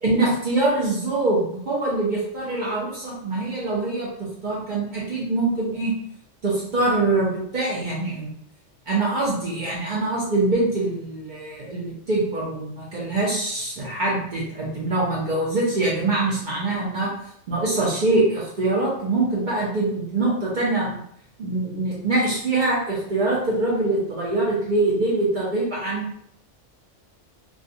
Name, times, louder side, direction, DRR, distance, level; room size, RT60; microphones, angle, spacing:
voice 1, 0.0-4.1 4.4-5.9 6.4-8.3 8.9-17.2 17.5-21.0 21.4-26.2, right 2 dB, 50° right, -5 dB, 0.6 m, -24 dB
2.3 x 2.1 x 2.6 m, 0.70 s
omnidirectional pair, 1.2 m